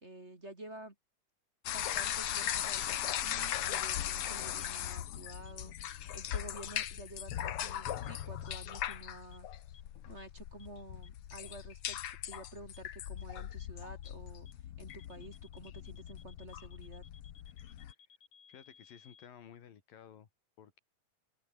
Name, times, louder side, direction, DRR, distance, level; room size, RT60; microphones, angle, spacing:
voice 1, 0.0-0.9 1.6-5.7 6.1-9.5 10.0-12.0 12.3-17.0, right 1 dB, 20° right, 3.3 m, -50 dB
sound 1, 1.7-17.9, left 11 dB, 65° left, 1.5 m, -39 dB
sound 2, 4.6-4.7 5.5-5.6 6.3-6.4 7.2-7.3 8.0-8.1 8.5-8.6 8.9-9.0 9.3-9.4 9.7-9.8 10.2-10.3 10.6-10.7 11.0-11.1 11.5-11.6 11.9-12.0 12.3-12.4 12.7-12.8 13.2-13.3 13.6-13.7 14.0-14.1 14.5-14.6 14.9-19.3, left 6 dB, 45° left, 3.4 m, -60 dB
voice 2, 18.5-20.3 20.6-20.8, left 9 dB, 85° left, 4.2 m, -54 dB
open air
omnidirectional pair, 3.9 m